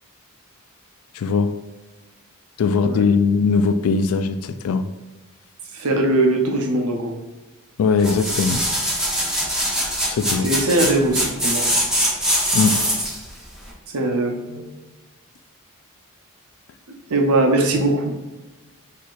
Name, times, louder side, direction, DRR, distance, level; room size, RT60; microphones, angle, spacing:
voice 1, 1.1-1.5 2.6-4.9 7.8-8.6 10.1-10.5 12.5-12.8, left 5 dB, 70° left, 10 dB, 0.3 m, -20 dB
voice 2, 5.7-7.2 10.4-11.7 13.9-14.6 17.1-18.1, right 2 dB, 90° right, 2 dB, 0.7 m, -20 dB
sound 1, 8.0-13.2 13.7-13.8, equal, 5° right, 0.9 m, -22 dB
6.2 x 2.8 x 2.4 m, 1.2 s
head